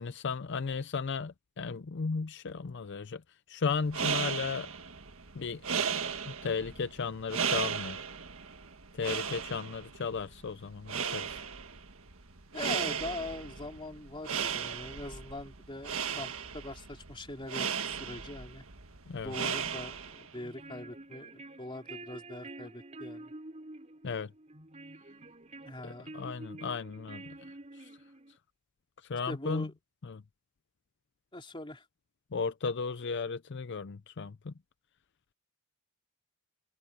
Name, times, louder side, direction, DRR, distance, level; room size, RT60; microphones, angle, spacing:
voice 1, 0.0-3.2 3.5-4.7 5.3-5.6 6.0-8.0 8.9-11.4 19.1-19.3 24.0-24.3 25.8-27.4 27.7-27.9 29.0-29.7 30.0-30.2 32.3-34.5, left 5 dB, 55° left, 0.5 m, -35 dB
sound 1, 3.7-20.3, right 7 dB, 65° right, 1.7 m, -36 dB
voice 2, 12.5-18.7 19.2-23.3 25.6-26.1 29.3-29.7 31.3-31.8, left 2 dB, 25° left, 3.4 m, -42 dB
sound 2, 20.3-28.4, right 2 dB, 30° right, 5.7 m, -48 dB
head